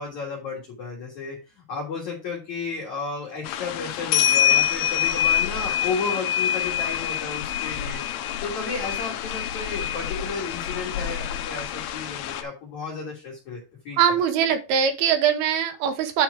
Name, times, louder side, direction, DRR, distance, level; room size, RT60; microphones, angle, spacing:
voice 1, 0.0-8.0 8.4-14.0, left 4 dB, 50° left, -3 dB, 2.7 m, -33 dB
sound 1, 3.5-12.4, left 10 dB, 80° left, 2.7 m, -26 dB
voice 2, 14.0-16.2, right 8 dB, 75° right, 8 dB, 2.7 m, -22 dB
9.3 x 4.6 x 4.7 m, 0.31 s
omnidirectional pair, 4.9 m